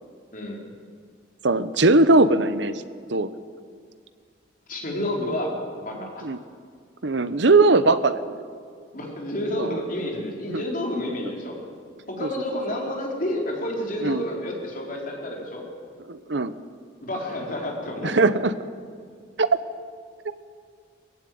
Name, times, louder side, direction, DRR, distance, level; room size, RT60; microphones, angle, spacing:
voice 1, 0.3-0.7 4.7-5.5 5.8-6.3 8.9-11.5 12.1-15.6 17.0-18.1, left 1 dB, 45° left, -1 dB, 4.4 m, -30 dB
voice 2, 1.4-2.8 3.1-3.3 6.0-6.4 7.0-8.4 9.6-9.8 10.5-10.6 12.2-12.3 14.0-14.2 16.1-16.5 18.0-18.5 19.4-19.5, right 2 dB, 60° right, 13 dB, 0.9 m, -20 dB
21.0 x 15.5 x 9.5 m, 2.1 s
head